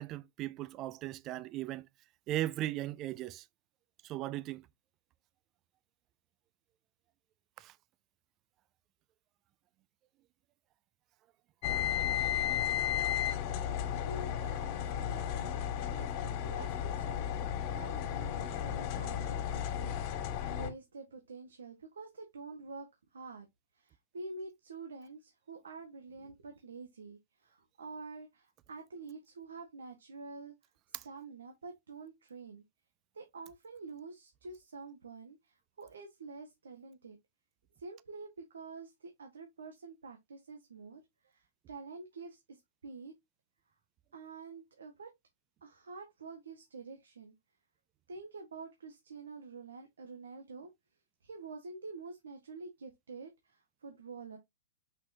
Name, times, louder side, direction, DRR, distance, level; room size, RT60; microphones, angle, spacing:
voice 1, 0.0-1.9 2.3-3.4 4.0-4.7 7.6-7.7 30.9-31.0, right 14 dB, 35° right, 0.5 m, -37 dB
sound 1, 11.6-20.7, left 10 dB, 45° left, 2.3 m, -34 dB
voice 2, 13.5-23.5 23.7-30.5 31.0-32.6 33.1-37.2 37.8-43.1 44.1-45.1 45.6-47.3 48.1-50.7 51.2-54.4, right 3 dB, 85° right, 1.7 m, -48 dB
6.1 x 5.8 x 2.9 m
hypercardioid pair, 125°, 0 cm